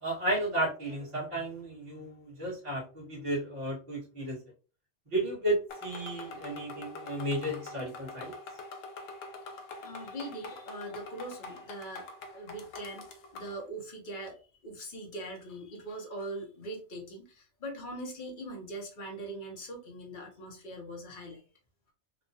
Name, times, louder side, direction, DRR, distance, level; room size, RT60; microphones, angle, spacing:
voice 1, 0.0-4.4 5.1-8.3, right 1 dB, 25° right, -6 dB, 1.3 m, -33 dB
sound 1, 5.7-13.6, left 3 dB, 80° left, 1.0 m, -45 dB
voice 2, 9.8-12.1 12.3-13.1 13.3-21.4, right 1 dB, 45° left, 1 dB, 0.9 m, -41 dB
3.0 x 2.3 x 2.6 m, 0.37 s
omnidirectional pair, 1.3 m